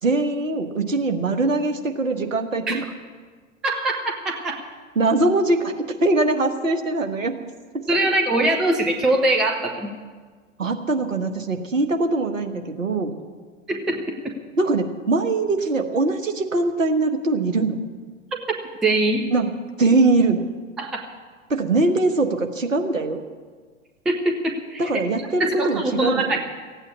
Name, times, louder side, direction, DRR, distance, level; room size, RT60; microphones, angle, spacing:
voice 1, 0.0-2.9 4.9-5.7 6.0-7.4 10.6-13.1 14.6-17.8 19.3-19.5 19.8-20.4 21.5-23.2 24.8-26.4, right 2 dB, 75° right, 5 dB, 1.4 m, -22 dB
voice 2, 3.6-4.6 7.9-9.9 13.7-14.3 18.8-19.3 20.8-21.0 24.1-24.9 25.4-26.4, right 2 dB, ahead, 2 dB, 0.3 m, -22 dB
15.0 x 8.8 x 8.5 m, 1.5 s
figure-of-eight pair, 100°, 40 cm